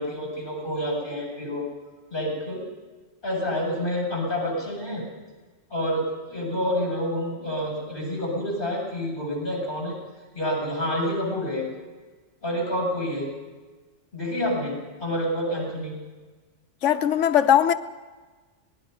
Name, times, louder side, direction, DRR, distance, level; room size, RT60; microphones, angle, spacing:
voice 1, 0.0-1.7 2.1-2.6 3.2-5.0 5.7-10.0 10.4-11.7 12.4-13.3 14.1-16.0, equal, 45° left, 7.5 m, -28 dB
voice 2, 16.8-17.7, left 10 dB, 85° left, 1.2 m, -19 dB
26.0 x 20.0 x 5.5 m
omnidirectional pair, 1.2 m